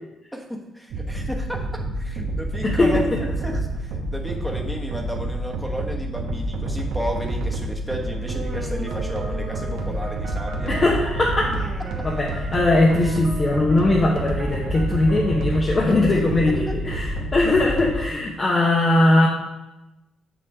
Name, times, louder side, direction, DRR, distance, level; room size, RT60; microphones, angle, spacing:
voice 1, 0.3-3.1 3.4-10.7 13.0-13.2 16.7-16.8, equal, ahead, 1 dB, 1.2 m, -33 dB
sound 1, 0.9-17.9, right 1 dB, 80° right, 1.0 m, -28 dB
voice 2, 2.6-3.0 10.7-11.5 12.0-19.3, left 2 dB, 35° left, -2 dB, 0.9 m, -20 dB
Human voice, 8.2-10.4 11.3-13.2, right 3 dB, 40° right, 1.1 m, -38 dB
sound 2, 8.9-16.3, right 4 dB, 65° right, 1.8 m, -40 dB
6.7 x 6.0 x 3.5 m, 1.0 s
cardioid pair, 90°, 0 cm